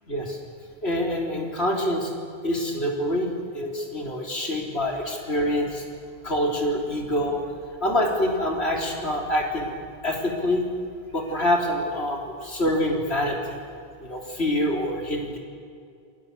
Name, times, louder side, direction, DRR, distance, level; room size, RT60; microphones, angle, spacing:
voice 1, 0.1-0.4 0.8-2.1 2.4-5.8 6.2-7.4 7.8-9.7 10.0-10.7 11.1-13.6 14.0-15.4, left 1 dB, 85° left, 0 dB, 4.1 m, -26 dB
28.5 x 25.0 x 6.8 m, 2.4 s
omnidirectional pair, 1.1 m